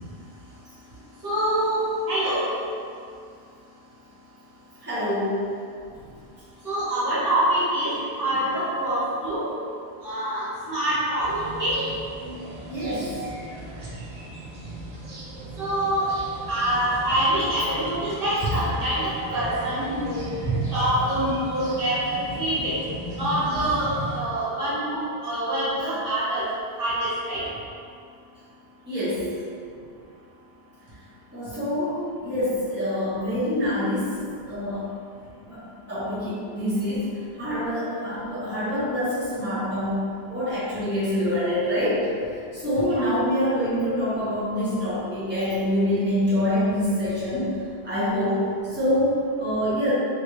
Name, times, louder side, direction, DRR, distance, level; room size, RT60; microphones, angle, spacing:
voice 1, 1.2-1.8 2.1-2.5 6.6-9.4 10.0-11.3 11.6-11.8 12.8-13.2 15.6-16.0 16.5-20.2 20.7-22.7 23.2-26.4 26.8-27.4 42.8-43.1, right 1 dB, 60° right, -11 dB, 1.2 m, -25 dB
voice 2, 4.8-5.4 12.7-13.1 28.9-29.3 31.3-34.2 34.5-34.9 35.4-35.6 35.9-37.1 37.4-42.1 42.5-47.5 47.8-48.4 48.7-49.9, left 1 dB, 10° right, -14 dB, 1.2 m, -25 dB
sound 1, 11.2-24.2, right 1 dB, 45° right, 0.6 m, -34 dB
3.2 x 2.6 x 3.0 m, 2.4 s
omnidirectional pair, 1.0 m